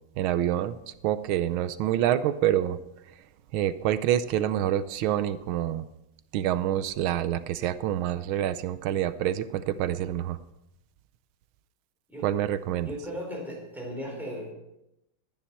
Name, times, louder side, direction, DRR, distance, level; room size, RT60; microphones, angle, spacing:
voice 1, 0.2-2.8 3.5-5.9 6.3-10.4 12.2-12.9, right 11 dB, 80° right, 14 dB, 1.5 m, -27 dB
voice 2, 12.8-14.5, equal, ahead, -2 dB, 4.8 m, -36 dB
14.5 x 9.7 x 5.8 m, 0.88 s
omnidirectional pair, 2.3 m